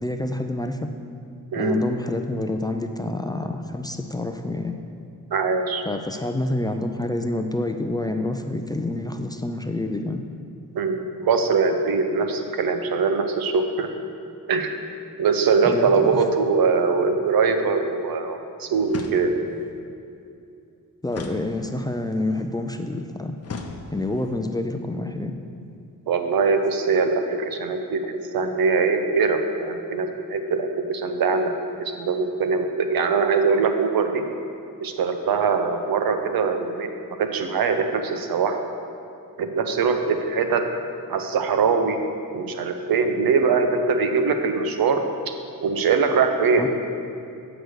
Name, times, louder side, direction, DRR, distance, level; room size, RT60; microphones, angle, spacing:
voice 1, 0.0-0.9 1.6-4.8 5.9-10.2 15.6-16.2 21.0-23.4 23.9-25.4 46.6-46.7, left 2 dB, 10° left, 5 dB, 0.4 m, -27 dB
voice 2, 5.3-5.8 10.7-13.9 14.5-14.7 15.2-19.3 26.1-31.5 31.8-34.2 34.8-36.9 37.2-38.6 39.4-40.7 41.1-42.0 42.3-45.0 45.6-46.7, right 5 dB, 80° right, 6 dB, 0.8 m, -22 dB
sound 1, 18.9-19.6 21.1-22.1 23.4-24.3, left 4 dB, 45° left, 0.8 m, -37 dB
8.0 x 5.0 x 6.3 m, 2.6 s
cardioid pair, 95°, 35 cm